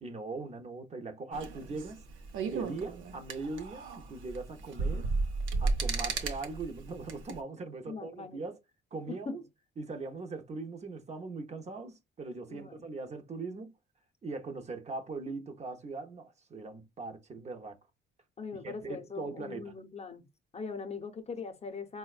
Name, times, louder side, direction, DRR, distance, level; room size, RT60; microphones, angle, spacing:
voice 1, 0.0-2.0 2.5-5.1 5.6-8.6 8.9-9.4 9.8-13.7 14.2-17.8 18.6-19.7, right 3 dB, 35° right, 0.6 m, -40 dB
sound 1, 1.3-7.4, right 3 dB, 85° right, 0.7 m, -34 dB
voice 2, 7.9-8.4 9.1-9.4 12.5-12.8 18.4-20.2 20.5-22.0, left 5 dB, 30° left, 0.7 m, -41 dB
4.0 x 2.1 x 2.3 m
cardioid pair, 90°, 20 cm